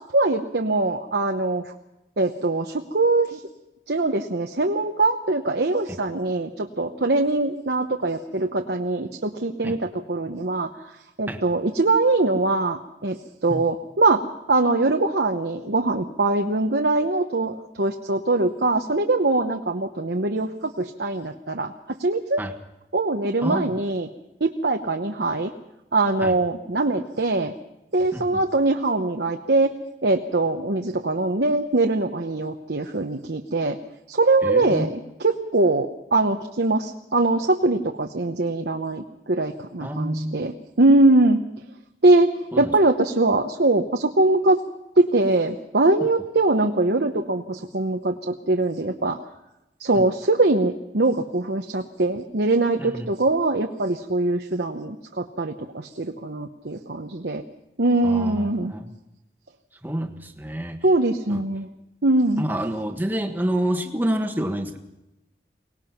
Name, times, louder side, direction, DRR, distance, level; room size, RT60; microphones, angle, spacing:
voice 1, 0.1-1.7 2.2-3.4 3.9-10.7 11.2-14.2 14.5-21.7 22.0-22.4 22.9-24.1 24.4-25.5 25.9-27.5 27.9-29.7 30.0-33.8 34.1-41.4 42.0-42.3 42.6-44.6 45.0-49.2 49.8-57.4 57.8-58.7 60.8-61.7 62.0-62.4, right 2 dB, 75° right, 4 dB, 1.0 m, -22 dB
voice 2, 23.4-23.7 26.2-26.4 28.1-28.4 34.4-34.9 39.8-40.4 42.5-42.7 52.8-53.1 58.0-58.9 59.8-60.8 61.3-61.4 62.4-64.8, right 1 dB, 10° right, 5 dB, 1.4 m, -28 dB
23.5 x 19.0 x 5.9 m, 0.91 s
head